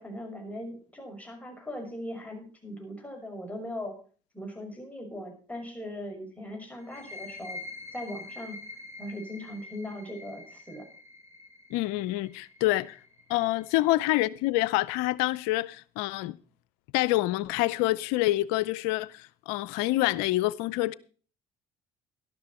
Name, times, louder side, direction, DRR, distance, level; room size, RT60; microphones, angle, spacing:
voice 1, 0.0-3.9 4.3-7.6 7.9-8.6 9.0-10.8, left 1 dB, 10° left, 5.9 m, -39 dB
sound 1, 6.8-14.2, left 3 dB, 15° right, 2.7 m, -46 dB
voice 2, 11.7-13.0 13.3-16.4 16.9-20.9, left 17 dB, 80° left, 0.6 m, -27 dB
12.5 x 12.0 x 4.3 m
hypercardioid pair, 70°, 17 cm